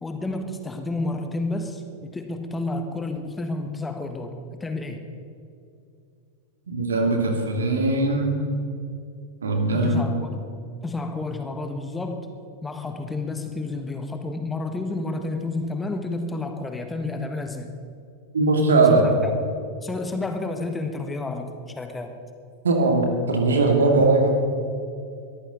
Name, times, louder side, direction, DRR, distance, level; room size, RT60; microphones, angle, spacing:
voice 1, 0.0-5.0 9.7-10.4 10.8-12.2 12.6-17.8 18.9-19.3 19.8-21.5 21.7-22.1, left 2 dB, 10° left, 5 dB, 1.5 m, -30 dB
voice 2, 6.7-8.5 9.4-10.1 18.3-19.1 22.6-24.3, right 3 dB, 70° right, 3 dB, 2.4 m, -20 dB
22.0 x 14.0 x 4.0 m, 2.5 s
figure-of-eight pair, 90°, 0 cm